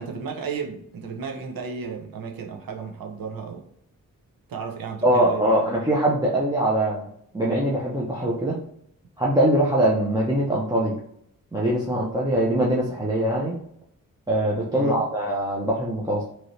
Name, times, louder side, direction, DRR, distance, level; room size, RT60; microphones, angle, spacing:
voice 1, 0.0-3.7 4.5-5.8 14.7-15.0, right 5 dB, 90° right, 3 dB, 0.7 m, -34 dB
voice 2, 5.0-7.0 7.3-8.6 9.2-11.0 11.5-13.5 14.3-16.2, right 1 dB, 10° right, -5 dB, 0.4 m, -22 dB
3.1 x 2.7 x 2.6 m, 0.71 s
wide cardioid pair, 165°, 34 cm